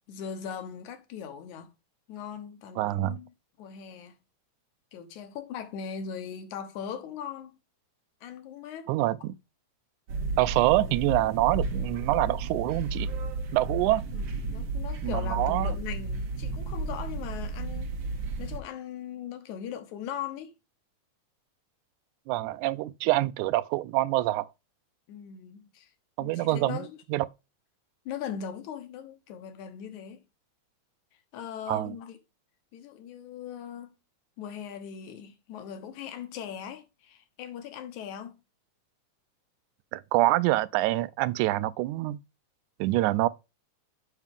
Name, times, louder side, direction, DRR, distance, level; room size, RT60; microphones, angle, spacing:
voice 1, 0.1-1.7 2.1-4.2 4.9-7.6 8.2-8.9 14.1-17.9 18.4-20.5 25.1-25.9 26.2-27.0 28.1-30.2 31.3-32.2 32.7-33.9 34.4-38.4, left 8 dB, 80° left, 2.4 m, -39 dB
voice 2, 2.8-3.1 8.9-9.3 10.4-13.1 13.5-14.0 15.0-15.7 22.3-24.5 26.2-27.3 31.7-32.0 39.9-42.2 42.8-43.3, right 17 dB, 90° right, 2.0 m, -26 dB
sound 1, 10.1-18.6, right 3 dB, 60° right, 1.9 m, -33 dB
7.3 x 5.8 x 3.6 m
omnidirectional pair, 3.4 m